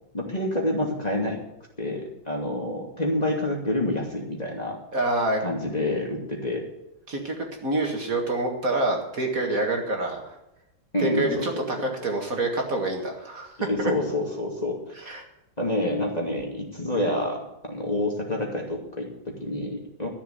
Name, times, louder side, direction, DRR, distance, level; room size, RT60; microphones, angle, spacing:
voice 1, 0.1-1.4 1.8-4.8 5.4-6.7 10.9-11.7 13.7-14.8 15.6-20.1, left 1 dB, 20° left, 0 dB, 2.6 m, -28 dB
voice 2, 4.9-5.4 7.1-7.4 7.6-10.3 11.0-13.9 15.0-15.2, right 2 dB, 50° right, 2 dB, 2.2 m, -27 dB
13.5 x 7.2 x 9.3 m, 0.89 s
omnidirectional pair, 2.0 m